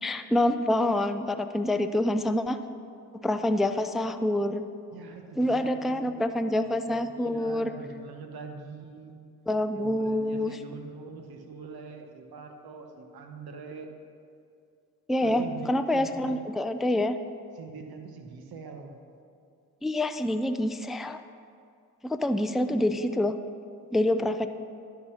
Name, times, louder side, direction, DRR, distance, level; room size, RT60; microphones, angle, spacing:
voice 1, 0.0-2.6 3.2-4.6 5.4-7.7 9.5-10.6 15.1-17.2 19.8-21.2 22.0-23.4 23.9-24.5, left 1 dB, ahead, 8 dB, 0.3 m, -26 dB
voice 2, 4.9-9.2 9.7-13.9 15.2-16.5 17.5-19.0 22.7-22.9, right 5 dB, 70° right, 5 dB, 1.1 m, -43 dB
11.5 x 4.0 x 5.7 m, 2.4 s
supercardioid pair, 50°, 39 cm